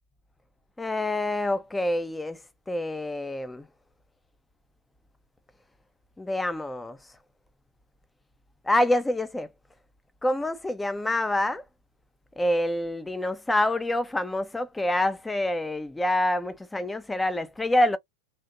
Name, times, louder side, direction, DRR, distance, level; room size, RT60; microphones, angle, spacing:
voice 1, 0.8-2.4 2.7-3.7 6.2-7.0 8.6-9.5 10.2-11.6 12.4-18.0, left 1 dB, 5° left, 0.5 m, -26 dB
3.2 x 2.7 x 2.5 m
figure-of-eight pair, 90°, 0 cm